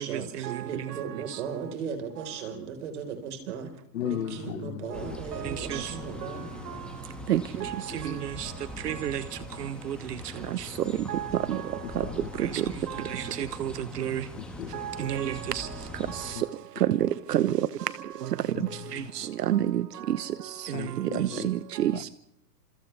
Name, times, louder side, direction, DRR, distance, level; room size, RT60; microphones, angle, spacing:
voice 1, 0.0-3.7 4.0-6.5, right 6 dB, 45° right, 4.4 m, -37 dB
voice 2, 3.9-5.2 5.8-7.0 7.9-8.4 9.5-9.6 11.8-12.5 14.4-15.2 16.3-16.4 18.5-19.3 20.7-21.5 21.9-22.0, left 11 dB, 55° left, 1.3 m, -38 dB
sound 1, 4.9-16.3, left 1 dB, ahead, 1.5 m, -42 dB
voice 3, 8.8-9.2 11.1-11.2 11.5-11.6 12.5-12.6 13.6-13.7 14.0-14.2 15.1-15.3 16.9-17.0 17.3-17.4 19.5-19.8 21.2-21.5 21.8-21.9, right 12 dB, 75° right, 1.2 m, -26 dB
29.5 x 27.5 x 3.4 m
hypercardioid pair, 175°, 49 cm